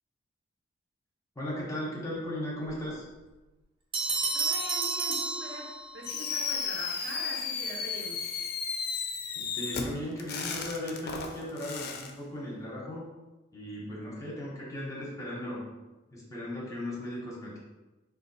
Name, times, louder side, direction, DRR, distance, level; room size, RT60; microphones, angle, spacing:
voice 1, 1.4-3.0 9.4-13.1 13.5-15.6 16.1-17.6, left 1 dB, 15° left, -4 dB, 0.6 m, -37 dB
Bell, 3.9-6.2, right 3 dB, 25° right, 0.4 m, -31 dB
voice 2, 4.3-5.7 5.9-8.2, right 1 dB, 60° right, -2 dB, 0.7 m, -42 dB
Fireworks, 6.0-12.1, left 6 dB, 55° left, 0.3 m, -34 dB
3.7 x 2.3 x 2.6 m, 1.1 s
head